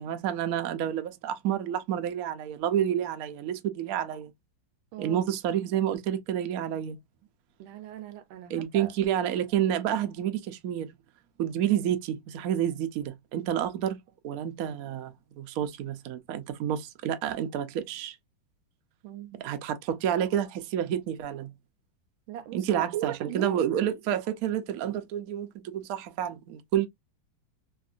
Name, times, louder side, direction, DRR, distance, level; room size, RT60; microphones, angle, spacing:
voice 1, 0.0-4.3 5.0-7.0 8.5-10.9 11.4-14.0 14.2-18.2 19.4-21.5 22.5-26.9, right 10 dB, 70° right, 0.8 m, -29 dB
voice 2, 4.9-5.2 7.6-8.9 19.0-19.4 22.3-23.6, right 10 dB, 90° right, 1.4 m, -37 dB
3.5 x 2.5 x 2.4 m
omnidirectional pair, 2.1 m